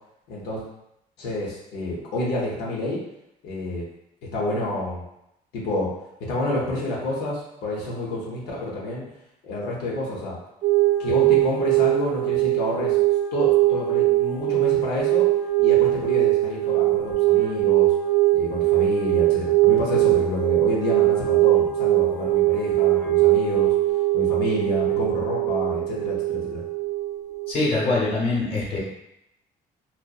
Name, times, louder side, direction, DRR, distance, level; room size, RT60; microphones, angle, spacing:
voice 1, 0.3-0.6 1.2-3.0 3.4-3.8 4.3-5.0 5.5-5.9 6.3-9.0 9.4-10.4 11.0-13.0 13.3-15.2 15.6-17.9 18.3-23.7 24.1-26.6, left 1 dB, 80° left, -4 dB, 0.7 m, -29 dB
sound 1, 10.6-27.5, right 16 dB, 60° right, 0.5 m, -21 dB
voice 2, 27.5-28.8, left 2 dB, 35° left, -4 dB, 0.9 m, -23 dB
2.7 x 2.0 x 2.3 m, 0.82 s
cardioid pair, 110°, 17 cm